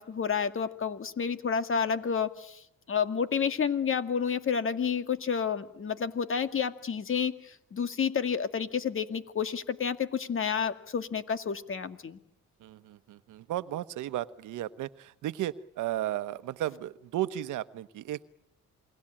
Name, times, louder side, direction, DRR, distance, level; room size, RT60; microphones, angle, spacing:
voice 1, 0.0-2.6 2.9-12.2, left 6 dB, 45° left, 10 dB, 2.0 m, -30 dB
voice 2, 12.6-18.3, right 13 dB, 85° right, 14 dB, 1.1 m, -34 dB
28.5 x 21.5 x 8.9 m, 0.76 s
cardioid pair, 90°, 30 cm